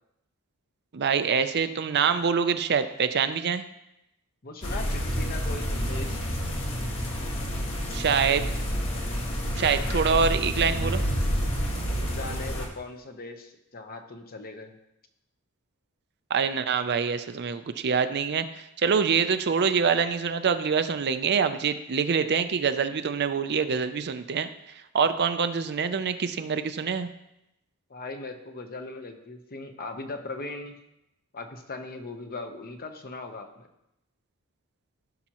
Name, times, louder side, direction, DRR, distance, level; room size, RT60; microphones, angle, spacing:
voice 1, 0.9-3.6 7.9-8.5 9.6-11.0 16.3-24.5 24.9-27.1, right 6 dB, 50° right, 10 dB, 0.5 m, -25 dB
voice 2, 4.4-6.2 11.9-14.7 27.9-30.7 31.3-33.6, left 3 dB, 45° left, 5 dB, 0.9 m, -39 dB
sound 1, 4.6-12.7, equal, 60° left, 1.8 m, -29 dB
16.0 x 5.8 x 3.0 m, 0.86 s
head